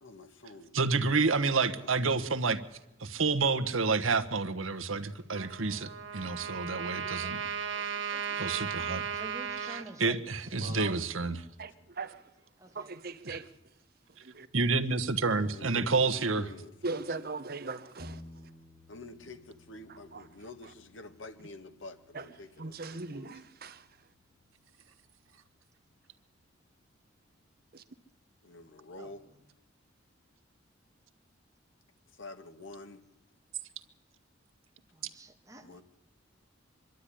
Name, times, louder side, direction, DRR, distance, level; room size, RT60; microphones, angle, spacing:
voice 1, 0.0-0.8 1.7-2.3 10.6-11.0 15.2-17.3 18.9-23.4 28.4-29.2 32.1-33.0 35.6-35.8, left 2 dB, 75° left, 1.7 m, -48 dB
voice 2, 0.7-2.6 3.0-7.4 8.4-9.0 9.6-11.4 13.2-13.4 14.5-16.5, right 4 dB, 90° right, 1.3 m, -29 dB
Trumpet, 5.3-9.8, right 7 dB, 70° right, 1.5 m, -36 dB
voice 3, 9.1-10.2 10.6-11.1 12.6-13.0 29.0-29.1 34.9-35.8, right 2 dB, 15° right, 1.8 m, -49 dB
voice 4, 11.6-12.1 12.8-13.5 14.3-14.5 16.8-18.2 22.1-22.2 22.6-23.8 27.7-27.8, right 3 dB, 50° right, 0.9 m, -39 dB
sound 1, 18.0-28.0, left 1 dB, 30° left, 2.9 m, -57 dB
24.5 x 12.0 x 10.0 m
head